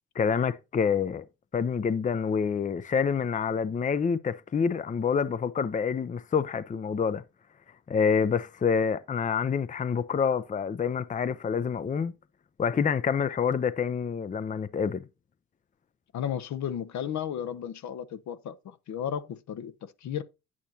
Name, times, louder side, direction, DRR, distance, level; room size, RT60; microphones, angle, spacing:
voice 1, 0.2-1.2 1.5-7.2 7.9-12.1 12.6-15.0, left 6 dB, 25° left, 0.5 m, -27 dB
voice 2, 16.1-20.2, left 9 dB, 65° left, 0.8 m, -34 dB
9.0 x 8.5 x 2.8 m
cardioid pair, 90°, 30 cm